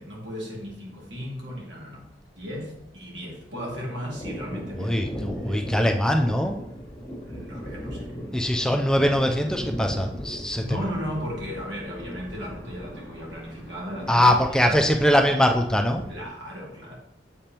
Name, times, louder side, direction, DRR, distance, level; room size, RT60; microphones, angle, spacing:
voice 1, 0.0-2.1 2.4-4.9 5.2-5.6 7.3-8.3 10.6-14.2 14.6-14.7 15.1-15.2 16.1-17.0, equal, 85° right, -3 dB, 2.2 m, -35 dB
Thunder, 0.7-0.8 1.1-1.2 1.5-3.0 3.3-16.3, equal, 20° left, 1.4 m, -38 dB
voice 2, 4.8-6.6 8.3-10.6 14.1-16.0, equal, 5° left, 3 dB, 0.4 m, -22 dB
7.5 x 5.1 x 2.9 m, 0.77 s
head